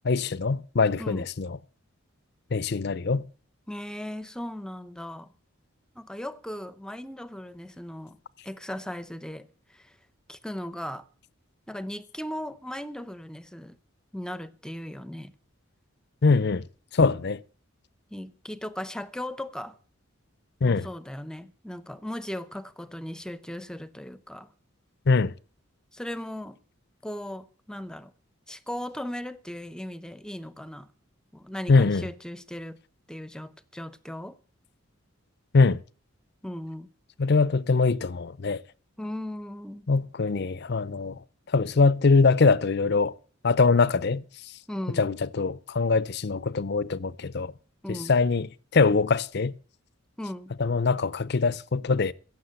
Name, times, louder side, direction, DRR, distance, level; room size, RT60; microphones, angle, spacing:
voice 1, 0.0-1.6 2.5-3.3 16.2-16.7 16.9-17.4 20.6-20.9 25.1-25.3 31.7-32.1 35.5-35.8 37.2-38.6 39.9-43.1 43.4-44.5 45.0-47.5 47.9-49.5 50.6-52.1, left 4 dB, 55° left, 0.6 m, -23 dB
voice 2, 3.7-5.3 6.0-8.2 8.4-9.9 10.3-11.0 11.7-13.8 14.1-15.3 18.1-19.8 20.7-24.5 25.9-26.6 27.0-28.1 28.5-30.9 31.3-32.8 33.1-34.4 36.4-36.9 39.0-39.9 44.7-45.1 47.8-48.1 50.2-50.5, left 1 dB, 5° left, 0.7 m, -37 dB
15.5 x 7.3 x 7.8 m
head